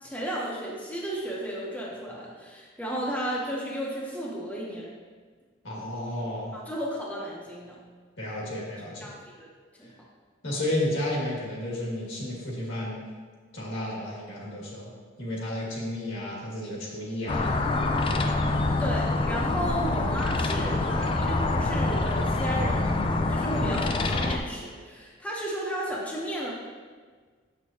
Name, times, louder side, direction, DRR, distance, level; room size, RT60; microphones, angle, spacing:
voice 1, 0.0-4.9 6.3-7.8 9.0-9.5 9.8-9.9 18.8-23.0 23.3-26.5, right 1 dB, 5° left, -5 dB, 0.9 m, -34 dB
voice 2, 5.6-6.5 8.2-9.1 10.4-13.0 13.5-14.9 15.2-17.5 23.5-23.8, left 1 dB, 75° left, -4 dB, 2.0 m, -32 dB
sound 1, 17.3-24.4, left 2 dB, 25° left, 0.4 m, -26 dB
7.7 x 6.4 x 2.8 m, 1.5 s
head